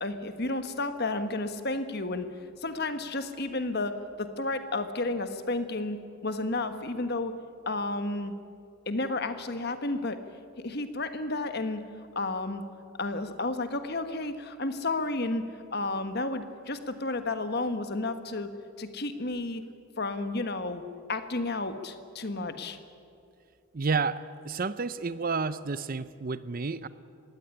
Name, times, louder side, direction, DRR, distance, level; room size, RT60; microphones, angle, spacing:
voice 1, 0.0-2.3 2.6-7.3 7.6-8.3 8.9-10.2 10.6-12.6 12.9-15.4 15.7-18.5 18.8-19.6 20.0-20.8 21.1-22.8, left 2 dB, 45° left, 9 dB, 1.4 m, -32 dB
voice 2, 23.7-26.9, right 4 dB, 40° right, 15 dB, 0.6 m, -30 dB
21.0 x 16.5 x 10.0 m, 2.4 s
head